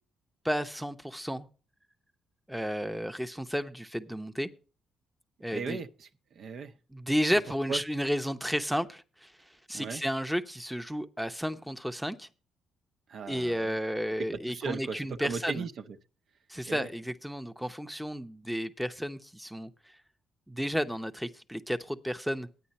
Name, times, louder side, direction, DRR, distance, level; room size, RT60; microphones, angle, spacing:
voice 1, 0.4-1.5 2.5-4.5 5.4-5.8 6.9-9.3 9.7-12.3 13.3-15.7 16.5-19.7 20.5-22.5, equal, ahead, 0.9 m, -32 dB
voice 2, 5.5-6.7 7.7-7.8 9.7-10.0 13.1-13.8 14.2-16.0 16.7-16.9, right 5 dB, 65° right, 1.0 m, -37 dB
11.5 x 9.2 x 4.2 m
cardioid pair, 90°, 0 cm